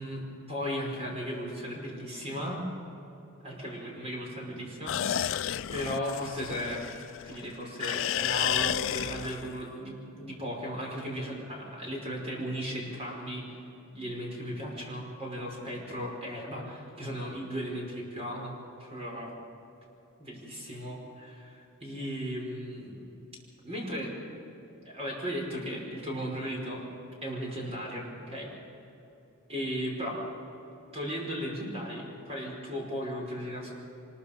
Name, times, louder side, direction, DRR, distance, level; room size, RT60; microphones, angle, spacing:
voice 1, 0.0-2.6 3.4-6.8 7.2-13.6 13.9-18.5 18.8-19.3 20.2-23.0 23.6-24.1 24.9-26.8 27.2-28.5 29.5-30.2 30.9-33.7, equal, 30° right, -2 dB, 5.6 m, -36 dB
sound 1, 4.9-7.4 7.8-9.6, left 10 dB, 60° left, 0.4 m, -31 dB
24.0 x 21.5 x 5.3 m, 2.9 s
head